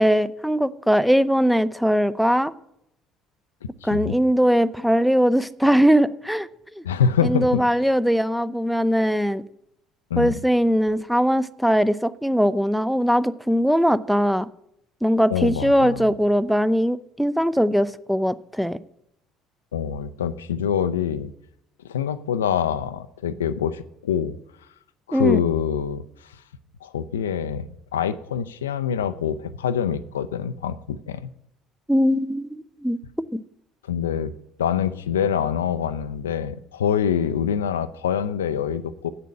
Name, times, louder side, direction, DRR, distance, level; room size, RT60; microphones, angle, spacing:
voice 1, 0.0-2.5 3.8-6.5 6.8-6.9 7.2-9.4 10.2-14.5 15.0-18.8 25.1-25.4 31.9-33.0 33.3-33.4, equal, ahead, 15 dB, 0.5 m, -20 dB
voice 2, 3.8-4.2 6.8-7.8 10.1-10.4 15.3-16.1 19.7-21.3 21.9-24.4 25.1-26.4 26.8-27.7 27.9-31.3 33.8-34.3 34.6-39.1, left 8 dB, 80° left, 12 dB, 0.4 m, -25 dB
8.4 x 6.8 x 8.5 m, 0.77 s
figure-of-eight pair, 55°, 0 cm